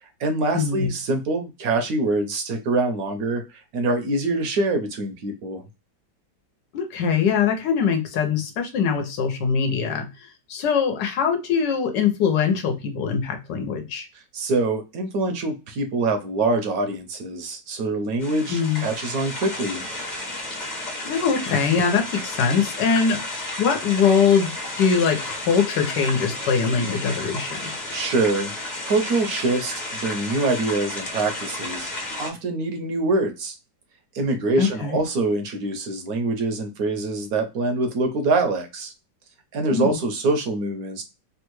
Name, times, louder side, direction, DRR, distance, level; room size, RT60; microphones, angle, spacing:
voice 1, 0.0-5.6 14.3-19.8 27.9-28.5 28.8-31.9 32.2-33.6 34.1-38.9 39.5-41.0, right 2 dB, 70° right, 6 dB, 0.9 m, -24 dB
voice 2, 0.5-0.9 6.7-10.0 10.5-14.1 18.5-18.8 21.0-23.2 23.6-24.5 24.8-27.5 34.6-35.0 39.7-39.9, left 6 dB, 85° left, 5 dB, 1.4 m, -22 dB
sound 1, 18.2-32.3, left 2 dB, 35° left, 0.8 m, -32 dB
3.5 x 2.3 x 3.0 m, 0.27 s
omnidirectional pair, 1.9 m